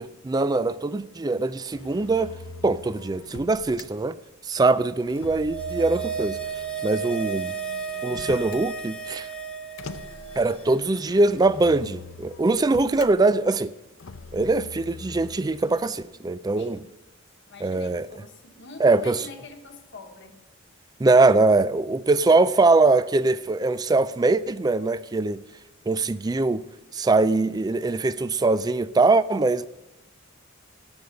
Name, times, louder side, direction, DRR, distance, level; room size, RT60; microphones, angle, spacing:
voice 1, 0.0-2.3 2.6-4.2 4.4-6.4 6.8-7.5 8.0-9.3 10.4-13.7 14.3-16.8 17.6-18.1 18.8-19.3 21.0-25.4 25.9-26.6 26.9-29.7, right 3 dB, 20° right, 0.3 m, -22 dB
Motor vehicle (road), 1.7-3.9 5.1-8.7 9.8-13.1 14.0-15.9, left 4 dB, 80° left, 0.7 m, -43 dB
sound 1, 5.2-10.6 10.9-11.0, right 6 dB, 5° left, 1.1 m, -33 dB
voice 2, 16.6-16.9 17.5-20.4, left 3 dB, 60° left, 1.3 m, -45 dB
16.5 x 6.5 x 5.2 m
head